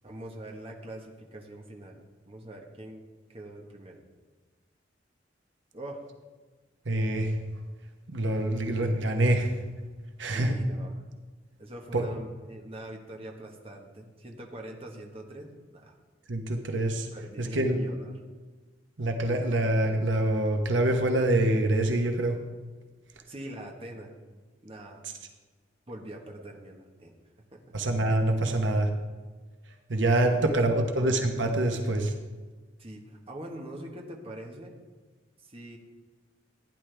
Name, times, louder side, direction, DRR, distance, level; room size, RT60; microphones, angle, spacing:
voice 1, 0.0-2.0 2.2-4.0 5.7-6.0 10.3-10.9 11.6-15.9 17.1-18.1 23.3-24.2 24.6-25.1 25.9-27.1 27.5-27.6 30.2-30.5 32.8-34.7 35.4-35.8, right 1 dB, 30° right, 1 dB, 1.4 m, -43 dB
voice 2, 6.8-7.4 8.1-9.6 10.2-10.5 11.9-12.0 16.3-17.1 17.4-17.8 19.0-22.4 25.0-25.1 27.7-28.9 29.7-32.1, right 1 dB, 75° right, 4 dB, 1.1 m, -25 dB
15.0 x 10.0 x 3.4 m, 1.3 s
head